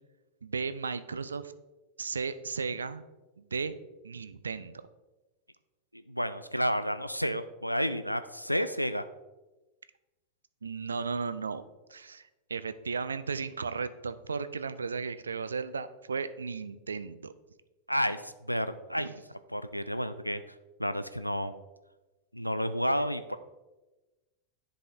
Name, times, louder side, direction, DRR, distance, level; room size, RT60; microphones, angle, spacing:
voice 1, 0.4-1.5 2.0-3.0 3.4-3.7 4.0-4.7 10.6-11.6 11.9-17.3 19.0-19.1 22.9-23.0, right 5 dB, 75° right, 13 dB, 0.4 m, -35 dB
voice 2, 5.9-9.0 17.9-20.4 20.8-21.6 22.3-23.4, equal, 90° left, 12 dB, 0.3 m, -31 dB
10.5 x 4.1 x 3.4 m, 1.1 s
figure-of-eight pair, 90°, 0 cm